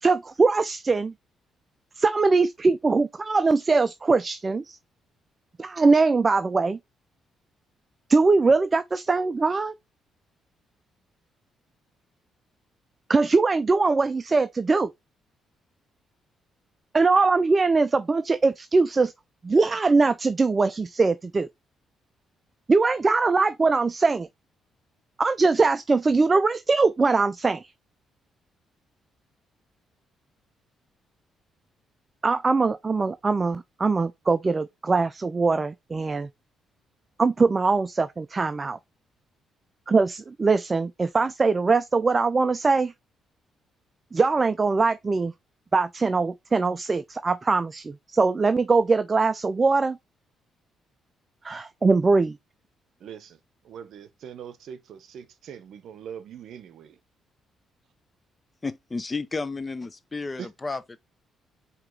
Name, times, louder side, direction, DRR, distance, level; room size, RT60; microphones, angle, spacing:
voice 1, 0.0-1.1 2.0-4.8 5.6-6.8 8.1-9.7 13.1-14.9 16.9-19.1 19.4-21.5 22.7-24.3 25.2-27.7 32.2-36.3 37.2-38.8 39.9-42.9 44.1-45.3 45.7-50.0 51.4-52.4, right 4 dB, 30° right, 0.3 m, -22 dB
voice 2, 53.0-53.4 53.6-57.0 60.4-60.5, right 8 dB, 70° right, 0.7 m, -42 dB
voice 3, 58.6-61.0, left 3 dB, 25° left, 0.5 m, -32 dB
4.7 x 2.9 x 3.6 m
cardioid pair, 90°, 0 cm